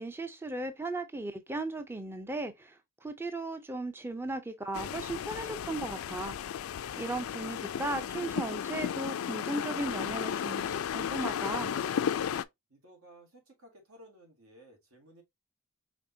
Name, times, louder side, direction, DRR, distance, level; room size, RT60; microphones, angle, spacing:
voice 1, 0.0-6.4 7.0-11.8, right 2 dB, 10° right, 0.4 m, -37 dB
sound 1, 4.7-12.4, left 8 dB, 75° left, 0.3 m, -34 dB
voice 2, 12.7-15.2, right 1 dB, 85° right, 2.0 m, -56 dB
5.1 x 3.4 x 2.6 m
head